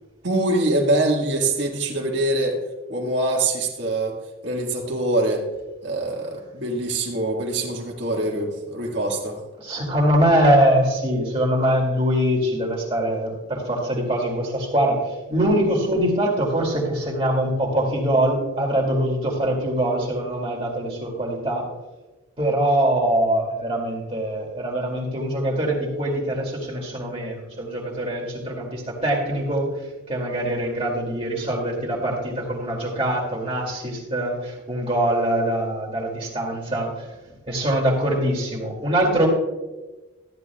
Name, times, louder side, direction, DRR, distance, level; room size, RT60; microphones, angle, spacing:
voice 1, 0.2-2.6 2.9-4.2 4.4-5.4 5.8-9.4, right 2 dB, 65° right, -1 dB, 1.7 m, -24 dB
voice 2, 9.6-21.7 22.4-39.3, right 1 dB, 30° right, -2 dB, 2.2 m, -23 dB
14.0 x 10.5 x 2.3 m, 1.1 s
head